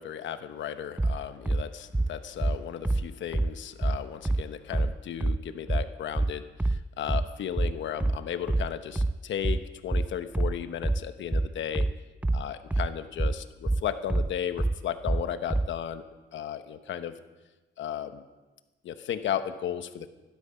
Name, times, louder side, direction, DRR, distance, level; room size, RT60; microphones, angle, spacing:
voice 1, 0.0-11.9 12.3-16.0 16.3-17.1 17.8-18.2 18.8-20.1, left 9 dB, 70° left, 10 dB, 1.2 m, -35 dB
sound 1, 1.0-15.8, right 2 dB, 5° right, 0.4 m, -27 dB
15.5 x 12.5 x 5.7 m, 1.2 s
cardioid pair, 90°, 20 cm